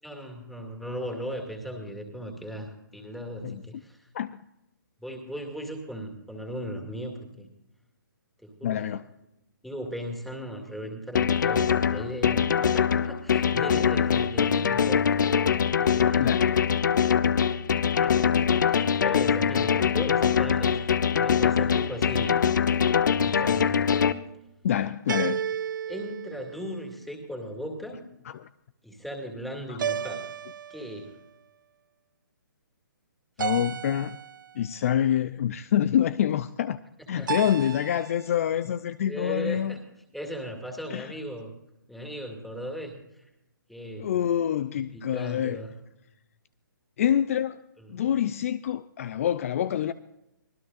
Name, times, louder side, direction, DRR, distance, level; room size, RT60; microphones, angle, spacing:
voice 1, 0.0-4.1 5.0-7.5 8.4-8.9 9.6-15.3 15.8-16.5 18.0-20.8 21.2-22.4 23.2-23.9 25.9-28.0 28.8-30.2 30.7-31.2 37.2-37.4 39.1-39.8 40.1-41.5 41.9-43.3 43.7-44.1 44.9-45.8 47.8-48.1, equal, ahead, 2.4 m, -37 dB
voice 2, 3.4-3.8 4.1-4.4 8.6-9.0 16.2-16.6 24.6-25.4 28.3-28.5 29.7-29.8 33.4-34.2 34.5-36.8 37.1-39.7 40.9-41.1 44.0-45.6 47.0-47.6 47.9-49.9, left 10 dB, 40° left, 0.5 m, -26 dB
sound 1, 11.2-24.1, left 7 dB, 60° left, 0.8 m, -23 dB
sound 2, 20.7-21.3 25.1-27.1 29.8-31.2 33.4-34.6 37.3-38.3, right 8 dB, 65° right, 0.4 m, -34 dB
25.0 x 17.5 x 2.6 m
hypercardioid pair, 145°, 11 cm